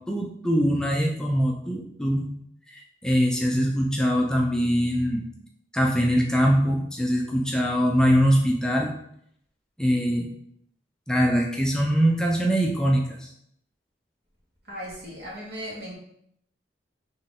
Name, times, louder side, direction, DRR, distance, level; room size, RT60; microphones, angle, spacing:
voice 1, 0.1-2.3 2.7-5.2 5.7-8.9 9.8-10.3 11.1-13.3, equal, 5° left, -1 dB, 0.4 m, -23 dB
voice 2, 14.7-16.0, equal, 65° right, -5 dB, 1.7 m, -37 dB
4.2 x 3.2 x 3.6 m, 0.71 s
head